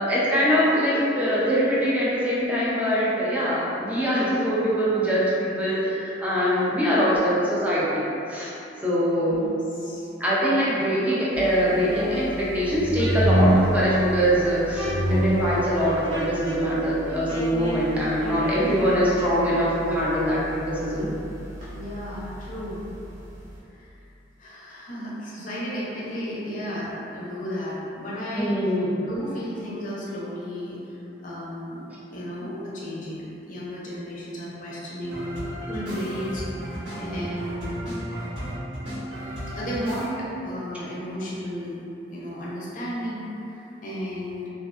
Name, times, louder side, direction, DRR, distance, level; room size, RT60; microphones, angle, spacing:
voice 1, 0.0-8.5 8.8-9.4 10.2-21.1 28.4-28.9, equal, 10° right, -8 dB, 0.4 m, -23 dB
voice 2, 6.8-7.2 9.3-9.4 9.7-10.1 18.6-18.9 21.7-22.9 23.7-23.9 24.4-28.7 29.0-37.8 39.5-41.8 42.1-44.5, equal, 45° left, -7 dB, 0.5 m, -34 dB
Wind instrument woodwind instrument, 10.3-19.0, left 1 dB, 5° left, 1.0 m, -35 dB
sound 1, 11.3-23.6, right 1 dB, 45° right, 0.7 m, -29 dB
sound 2, 35.0-40.1, equal, 85° right, 1.2 m, -34 dB
2.4 x 2.2 x 2.4 m, 2.9 s
head